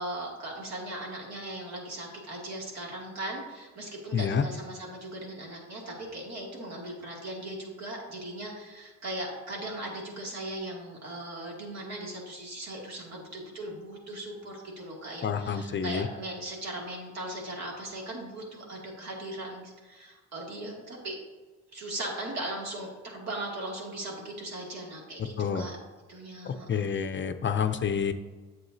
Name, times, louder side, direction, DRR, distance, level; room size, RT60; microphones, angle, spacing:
voice 1, 0.0-21.2 21.7-25.8 26.1-26.9, right 1 dB, 60° right, -2 dB, 2.4 m, -38 dB
voice 2, 4.1-4.4 15.2-16.1 25.4-25.7 26.4-28.1, left 7 dB, 40° left, 9 dB, 0.5 m, -28 dB
7.9 x 7.8 x 2.7 m, 1.3 s
cardioid pair, 90°, 30 cm